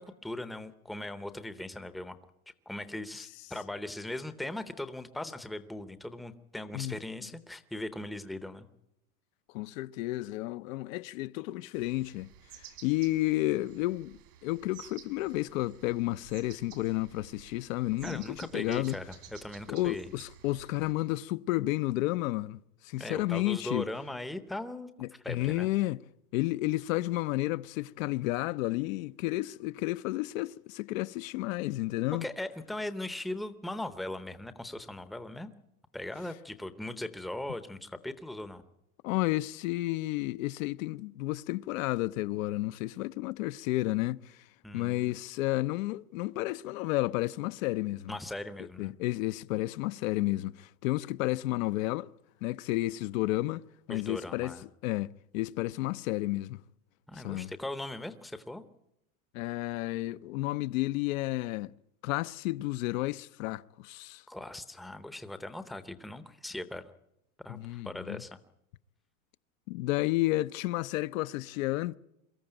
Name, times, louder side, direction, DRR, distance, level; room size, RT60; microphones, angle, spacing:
voice 1, 0.0-2.2 2.7-8.7 18.0-19.1 19.4-20.1 23.0-24.9 25.2-25.7 32.1-35.5 35.9-38.6 44.6-45.2 48.1-48.9 53.9-54.6 57.1-58.6 64.3-66.8 67.4-68.3, left 1 dB, ahead, 0.7 m, -39 dB
voice 2, 9.5-19.0 19.7-23.9 25.0-26.0 26.3-32.3 39.0-44.5 44.7-48.1 48.8-52.1 52.4-54.5 54.8-56.6 57.1-57.5 59.3-61.7 62.0-64.2 67.5-68.2 69.7-72.0, left 18 dB, 60° left, 0.7 m, -32 dB
sound 1, 11.7-20.9, right 11 dB, 80° right, 2.9 m, -53 dB
23.0 x 14.0 x 8.9 m
supercardioid pair, 140°, 45 cm